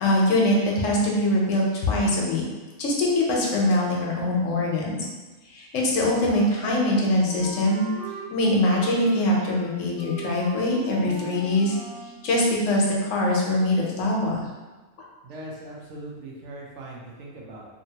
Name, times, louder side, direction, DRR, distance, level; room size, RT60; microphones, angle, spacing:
voice 1, 0.0-2.4 2.8-5.1 5.5-7.9 8.3-11.8 12.2-14.4, left 1 dB, 70° left, -2 dB, 1.0 m, -23 dB
Wind instrument woodwind instrument, 6.2-8.3 8.6-9.7 9.9-12.1, right 1 dB, 40° right, 1.4 m, -40 dB
voice 2, 15.2-17.6, right 1 dB, 65° right, -2 dB, 0.9 m, -40 dB
2.8 x 2.6 x 2.8 m, 1.2 s
omnidirectional pair, 1.4 m